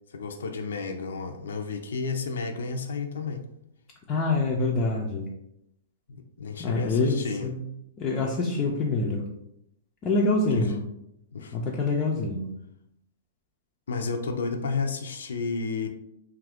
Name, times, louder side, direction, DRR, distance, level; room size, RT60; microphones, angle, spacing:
voice 1, 0.1-3.4 6.1-7.5 10.5-10.7 11.3-11.6 13.9-15.9, left 4 dB, 90° left, 5 dB, 0.4 m, -32 dB
voice 2, 4.1-5.3 6.6-7.6 8.0-9.3 10.0-10.8 11.5-12.5, left 3 dB, 20° left, -1 dB, 0.3 m, -26 dB
2.7 x 2.4 x 3.5 m, 0.80 s
hypercardioid pair, 170°, 0 cm